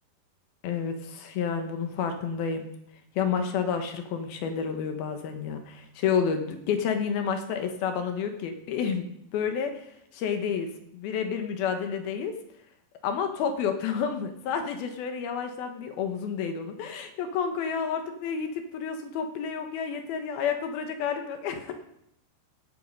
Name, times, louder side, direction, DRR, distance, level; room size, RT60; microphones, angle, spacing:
voice 1, 0.6-2.7 3.2-9.1 9.3-12.3 13.0-21.7, left 7 dB, 70° left, 6 dB, 2.8 m, -30 dB
16.5 x 8.3 x 5.4 m, 0.76 s
omnidirectional pair, 4.8 m